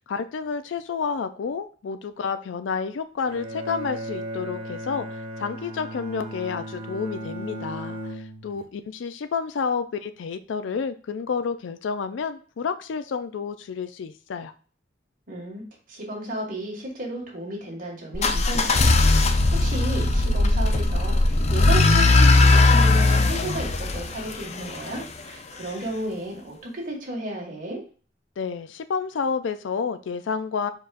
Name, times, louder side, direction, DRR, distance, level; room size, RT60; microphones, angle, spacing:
voice 1, 0.1-5.1 5.4-14.5 28.4-30.7, left 5 dB, 90° left, 10 dB, 0.4 m, -30 dB
Bowed string instrument, 3.3-8.7, right 1 dB, 30° right, 1.0 m, -36 dB
voice 2, 15.3-15.6 15.9-19.0 19.5-27.8, right 1 dB, 50° right, -1 dB, 1.9 m, -33 dB
sound 1, 18.1-25.0, left 2 dB, 35° left, 0.5 m, -19 dB
4.7 x 4.5 x 2.5 m, 0.40 s
head